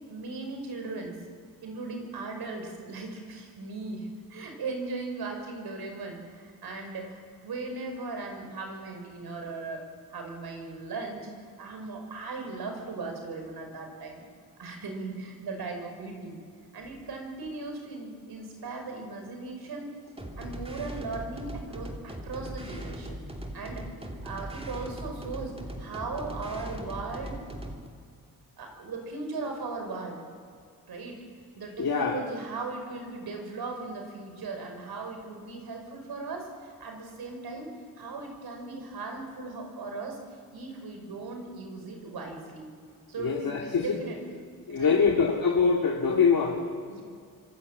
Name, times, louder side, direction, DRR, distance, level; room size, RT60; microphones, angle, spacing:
voice 1, 0.1-1.2 1.6-11.3 11.6-14.3 14.6-16.4 16.7-19.9 20.4-23.2 23.5-23.9 24.2-27.4 28.6-30.2 30.9-31.3 31.6-37.7 38.0-40.2 40.5-42.7 43.1-44.4 44.7-45.1 46.9-47.0, right 3 dB, 90° right, 3 dB, 5.4 m, -38 dB
sound 1, 20.2-27.9, right 1 dB, 15° right, 2.8 m, -39 dB
voice 2, 31.8-32.2 43.2-43.9 44.7-46.7, left 5 dB, 65° left, -1 dB, 2.9 m, -24 dB
25.5 x 22.0 x 8.5 m, 2.2 s
wide cardioid pair, 100°, 36 cm